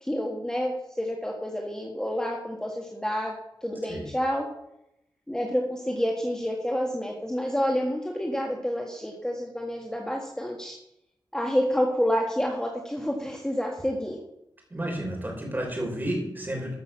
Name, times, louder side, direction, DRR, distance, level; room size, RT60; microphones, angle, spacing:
voice 1, 0.0-3.3 3.6-4.5 5.3-10.7 11.3-14.2, equal, 10° left, 0 dB, 1.7 m, -28 dB
voice 2, 14.7-16.7, right 1 dB, 20° right, -1 dB, 5.3 m, -31 dB
13.0 x 6.5 x 7.3 m, 0.81 s
wide cardioid pair, 105°, 8 cm